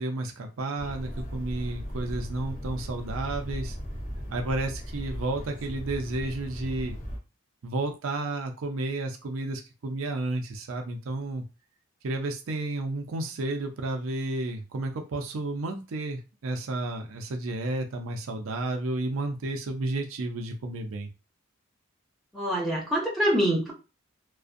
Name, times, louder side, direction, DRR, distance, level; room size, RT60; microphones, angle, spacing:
voice 1, 0.0-3.8 4.3-7.0 7.6-11.4 12.0-21.1, right 2 dB, 70° right, 4 dB, 0.5 m, -32 dB
sound 1, 0.8-7.2, equal, 35° left, 0.7 m, -37 dB
voice 2, 22.3-23.7, equal, ahead, -3 dB, 0.7 m, -25 dB
2.5 x 2.1 x 2.5 m, 0.30 s
head